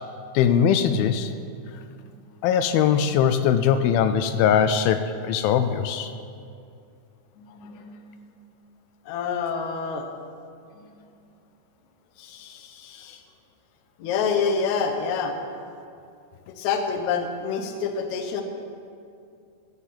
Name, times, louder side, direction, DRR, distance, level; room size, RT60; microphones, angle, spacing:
voice 1, 0.3-1.3 2.4-6.1, left 8 dB, 85° left, 10 dB, 2.4 m, -21 dB
voice 2, 1.9-2.2 7.4-8.3 9.1-10.1 10.7-10.8 12.2-13.2 14.0-15.4 16.5-18.4, left 6 dB, 65° left, 5 dB, 2.1 m, -28 dB
13.0 x 7.8 x 7.6 m, 2.4 s
omnidirectional pair, 4.2 m